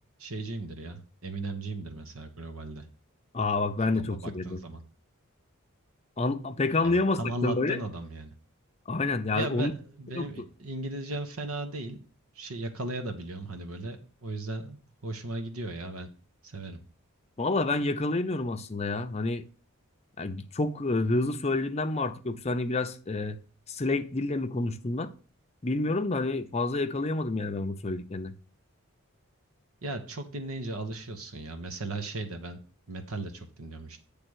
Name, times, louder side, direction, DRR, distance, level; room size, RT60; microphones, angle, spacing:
voice 1, 0.2-2.8 3.9-4.8 6.8-8.3 9.3-9.7 10.0-12.0 12.3-16.1 16.4-16.8 29.8-32.6 32.9-34.0, right 2 dB, 70° right, 1.2 m, -36 dB
voice 2, 3.3-4.6 6.2-7.8 8.9-9.7 10.2-10.4 17.4-19.4 20.2-23.4 23.7-25.1 25.6-28.3, left 2 dB, 30° left, 0.6 m, -28 dB
9.0 x 3.4 x 6.3 m
head